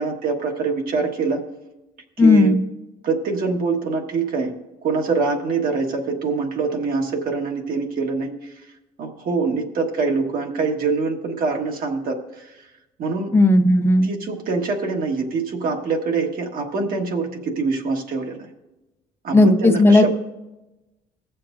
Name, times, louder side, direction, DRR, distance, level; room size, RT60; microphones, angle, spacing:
voice 1, 0.0-1.4 2.2-2.6 3.0-4.5 4.8-8.6 9.0-12.7 13.0-13.3 14.0-18.5 19.2-20.2, right 4 dB, 60° right, 2 dB, 1.5 m, -24 dB
voice 2, 2.2-2.6 13.3-14.1 19.3-20.2, left 2 dB, 15° left, 5 dB, 1.0 m, -14 dB
22.0 x 7.3 x 2.6 m, 1.0 s
cardioid pair, 110°, 17 cm